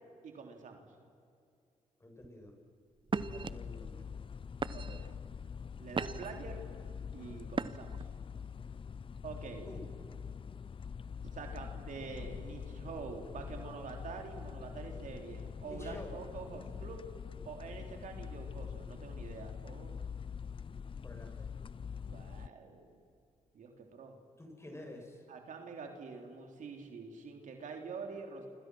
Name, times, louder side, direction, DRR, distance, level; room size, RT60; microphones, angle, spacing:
voice 1, 0.2-0.9 4.7-5.2 5.8-6.6 7.1-7.9 9.2-9.7 11.3-17.0 17.4-20.1 22.0-22.9 23.5-24.2 25.3-28.5, right 4 dB, 70° right, 3 dB, 3.3 m, -46 dB
voice 2, 2.0-2.6 3.3-4.1 9.6-9.9 15.6-16.2 21.0-21.5 24.4-25.2, left 1 dB, 20° left, 2 dB, 7.4 m, -49 dB
sound 1, 2.2-2.5 3.1-3.5 4.2-4.3 4.6-5.1 5.6-6.4 7.5-8.0, right 5 dB, 40° right, 0.9 m, -37 dB
sound 2, 3.1-22.5, left 6 dB, 40° left, 0.5 m, -44 dB
29.5 x 26.0 x 6.2 m, 2.4 s
supercardioid pair, 55°, 13 cm